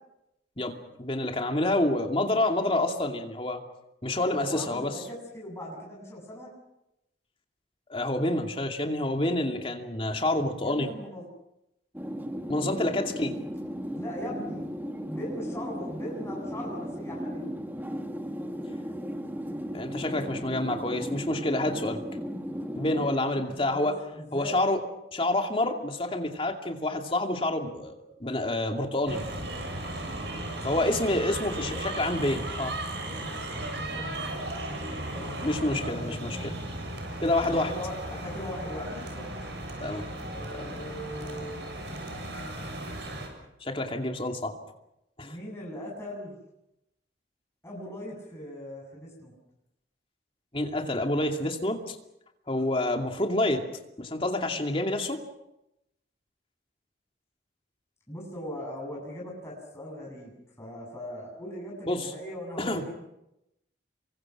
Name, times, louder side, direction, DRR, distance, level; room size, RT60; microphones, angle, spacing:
voice 1, 1.0-3.6 4.0-5.0 7.9-10.9 12.5-13.3 19.7-22.0 22.8-24.0 24.3-24.8 25.1-29.2 30.6-32.7 35.4-36.5 37.2-37.7 39.8-40.1 40.5-40.7 43.6-44.5 45.2-45.3 50.5-52.0 52.5-53.6 54.0-55.2 61.9-62.1 62.6-62.8, left 1 dB, 30° left, 4 dB, 2.6 m, -28 dB
voice 2, 4.2-6.5 10.6-11.3 12.8-13.2 13.9-14.6 15.1-17.5 23.2-24.6 30.9-31.8 33.7-34.4 35.1-36.7 37.4-39.3 40.3-41.7 45.2-46.3 47.6-49.3 52.5-52.6 58.1-62.9, left 1 dB, 15° left, -3 dB, 7.8 m, -40 dB
sound 1, 11.9-23.1, equal, 10° right, 1.3 m, -36 dB
sound 2, 29.1-43.3, right 1 dB, 70° right, 7.1 m, -36 dB
29.0 x 24.0 x 6.1 m, 0.86 s
head